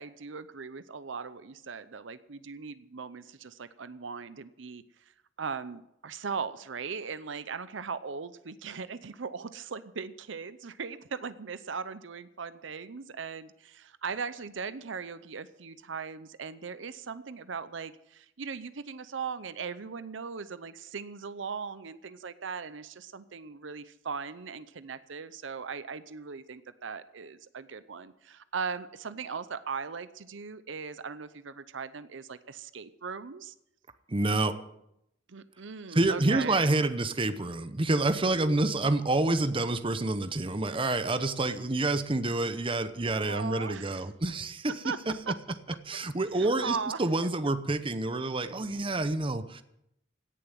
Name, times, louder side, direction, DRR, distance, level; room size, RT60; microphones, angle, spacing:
voice 1, 0.0-4.8 5.4-33.5 35.3-36.6 43.2-44.0 44.8-45.0 45.3-45.4 46.4-47.0, right 5 dB, 70° right, 14 dB, 0.7 m, -39 dB
voice 2, 34.1-34.6 35.9-45.2 45.9-49.6, right 2 dB, 30° right, 11 dB, 0.8 m, -28 dB
17.0 x 7.0 x 9.3 m, 0.81 s
head